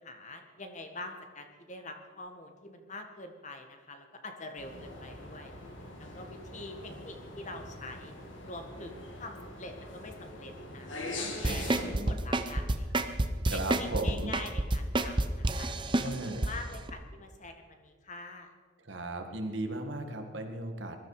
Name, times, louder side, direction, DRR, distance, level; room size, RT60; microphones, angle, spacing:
voice 1, 0.0-5.5 6.0-8.1 8.5-13.1 13.5-15.9 16.3-18.5, left 2 dB, 40° left, 5 dB, 1.7 m, -45 dB
sound 1, 4.6-11.8, left 2 dB, 70° left, 3.0 m, -43 dB
sound 2, 11.4-16.5 16.9-17.0, right 2 dB, 25° right, 0.8 m, -28 dB
voice 2, 11.5-12.2 13.5-14.4 16.0-16.5 18.8-21.0, right 2 dB, 65° right, 5 dB, 1.9 m, -36 dB
20.5 x 13.5 x 5.0 m, 1.6 s
head